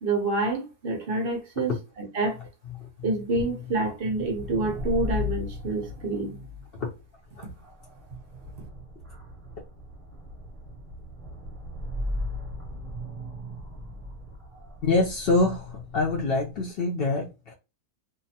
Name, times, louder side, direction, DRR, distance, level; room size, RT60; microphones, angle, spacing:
voice 1, 0.0-2.4 3.0-6.4, right 2 dB, 50° right, 0.7 m, -28 dB
sound 1, 4.0-16.6, left 2 dB, 25° right, 0.9 m, -37 dB
voice 2, 14.8-17.5, left 3 dB, 60° left, 0.6 m, -25 dB
2.8 x 2.1 x 2.7 m
omnidirectional pair, 1.6 m